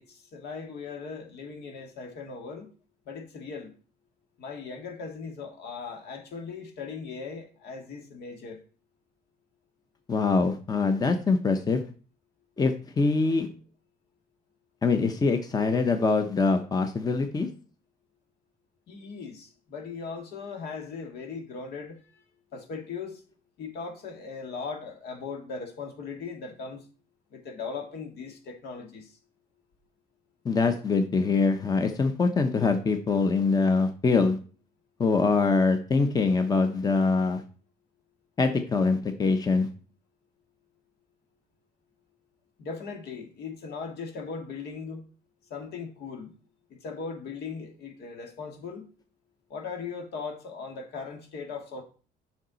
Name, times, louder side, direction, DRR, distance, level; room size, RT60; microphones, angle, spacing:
voice 1, 0.0-2.7 3.1-3.7 4.4-8.6 18.9-22.2 22.5-23.2 23.6-26.8 27.3-29.1 42.6-45.0 45.5-46.3 46.7-48.9 49.5-51.8, left 5 dB, 70° left, 1.9 m, -38 dB
voice 2, 10.1-11.8 12.6-13.5 14.8-17.5 30.4-34.4 35.0-37.4 38.4-39.7, left 4 dB, 20° left, 0.8 m, -24 dB
7.3 x 5.7 x 4.0 m
cardioid pair, 110°, 17 cm